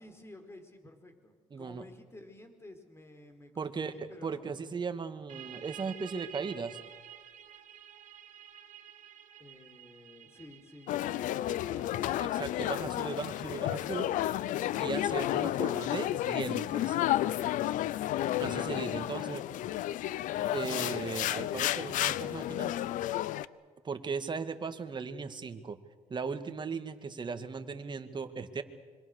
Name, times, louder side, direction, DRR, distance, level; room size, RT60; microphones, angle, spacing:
voice 1, 0.0-4.5 9.4-12.1, left 1 dB, 20° left, 7 dB, 4.2 m, -52 dB
voice 2, 1.5-1.8 3.6-6.8 12.2-14.1 14.8-17.0 18.4-19.4 20.5-22.7 23.8-25.8 26.1-28.6, right 5 dB, 35° right, 8 dB, 2.0 m, -37 dB
sound 1, 5.3-16.7, right 10 dB, 65° right, 2.2 m, -52 dB
sound 2, 10.9-23.5, left 13 dB, 75° left, 0.7 m, -32 dB
26.0 x 24.5 x 6.8 m, 1.5 s
cardioid pair, 90°, 13 cm